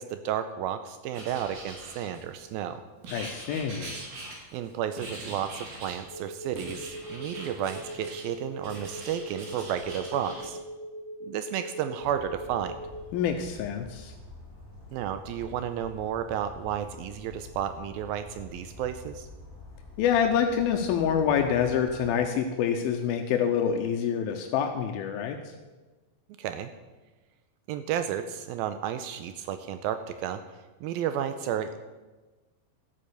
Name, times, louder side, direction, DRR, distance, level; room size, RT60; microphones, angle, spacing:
voice 1, 0.0-2.8 4.5-10.6 11.2-12.8 14.9-19.3 26.4-26.7 27.7-30.5 30.8-31.8, right 9 dB, 80° right, 10 dB, 2.3 m, -32 dB
Writing, 1.1-2.4 3.0-4.7 5.0-6.0 6.6-8.3 8.6-10.5, right 2 dB, 60° right, 4.1 m, -42 dB
voice 2, 3.1-4.0 13.1-14.1 20.0-25.4, left 8 dB, 80° left, 5 dB, 2.6 m, -26 dB
sound 1, 6.1-13.1, right 1 dB, 55° left, 2.1 m, -41 dB
Bird vocalization bird call bird song, 12.0-22.1, left 2 dB, 5° left, 3.6 m, -47 dB
13.0 x 8.6 x 6.6 m, 1.2 s
omnidirectional pair, 4.4 m